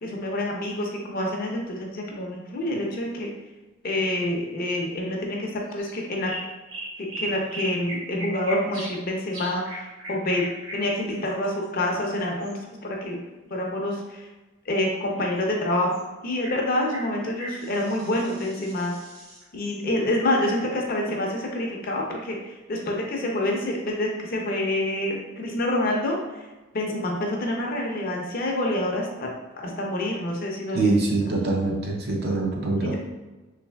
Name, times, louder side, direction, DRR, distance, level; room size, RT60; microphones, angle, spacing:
voice 1, 0.0-3.3 3.8-6.3 7.2-10.5 10.7-13.2 13.5-14.3 14.7-15.9 16.2-18.9 19.5-22.4 22.7-26.2 26.7-29.3 29.6-30.9, left 1 dB, 45° left, 0 dB, 0.5 m, -27 dB
sound 1, 5.7-5.9 6.2-9.0 9.3-12.5 15.9-16.0 16.4-16.6 16.9-19.8 22.8-22.9 23.5-23.7, right 1 dB, 80° right, 1.0 m, -38 dB
voice 2, 30.7-33.0, right 3 dB, 50° right, 0 dB, 0.5 m, -24 dB
3.2 x 3.2 x 2.2 m, 1.2 s
head